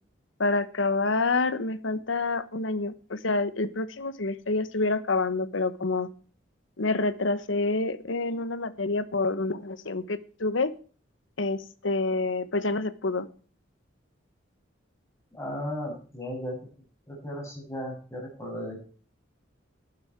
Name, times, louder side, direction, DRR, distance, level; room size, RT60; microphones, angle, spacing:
voice 1, 0.4-6.1 6.8-10.7 11.4-13.3, left 3 dB, 80° left, 14 dB, 1.1 m, -27 dB
voice 2, 15.3-16.6 17.1-18.8, equal, 15° left, -1 dB, 7.3 m, -35 dB
12.0 x 12.0 x 4.6 m, 0.40 s
head